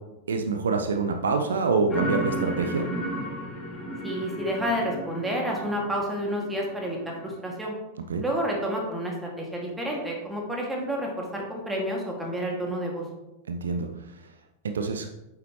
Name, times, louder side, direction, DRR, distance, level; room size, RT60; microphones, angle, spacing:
voice 1, 0.3-2.8 8.1-8.2 13.5-13.9 14.6-15.1, right 4 dB, 65° right, 6 dB, 0.6 m, -26 dB
sound 1, 1.9-7.4, equal, 15° left, 2.2 m, -34 dB
voice 2, 4.0-7.0 7.2-7.7 8.2-13.0, equal, 5° right, -1 dB, 2.2 m, -30 dB
9.1 x 7.3 x 3.1 m, 0.99 s
figure-of-eight pair, 90°, 0 cm